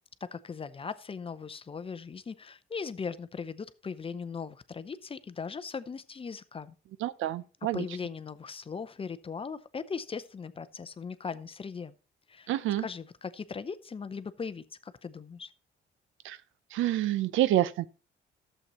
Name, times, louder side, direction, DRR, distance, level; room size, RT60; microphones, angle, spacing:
voice 1, 0.2-6.7 7.7-11.9 12.3-12.5 12.8-15.5, left 5 dB, 30° left, 0.6 m, -39 dB
voice 2, 7.0-7.8 12.5-12.8 16.2-16.4 16.7-17.9, right 13 dB, 80° right, 0.5 m, -28 dB
11.5 x 7.6 x 3.0 m
cardioid pair, 90°, 20 cm